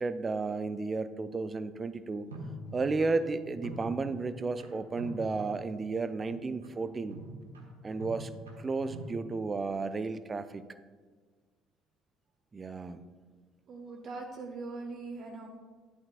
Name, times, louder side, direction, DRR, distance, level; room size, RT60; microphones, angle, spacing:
voice 1, 0.0-2.3 2.7-7.2 7.8-8.3 8.6-10.6 12.5-13.0, right 3 dB, 25° right, 13 dB, 0.5 m, -33 dB
sound 1, 2.2-4.7 5.0-5.9 6.2-9.1, equal, 75° right, 1.2 m, -45 dB
voice 2, 13.7-15.5, right 3 dB, 45° right, 3 dB, 0.8 m, -41 dB
11.0 x 11.0 x 2.4 m, 1.5 s
figure-of-eight pair, 55°, 0 cm